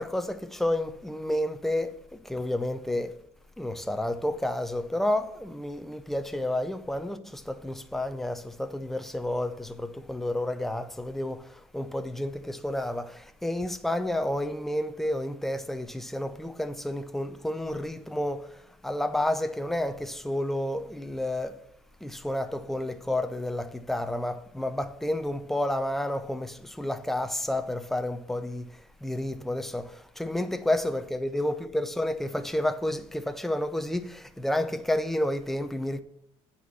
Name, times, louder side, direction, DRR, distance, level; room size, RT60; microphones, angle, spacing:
voice 1, 0.0-3.1 3.6-21.6 22.0-36.0, left 1 dB, ahead, 0.6 m, -30 dB
9.2 x 4.2 x 6.9 m
cardioid pair, 135°, 11 cm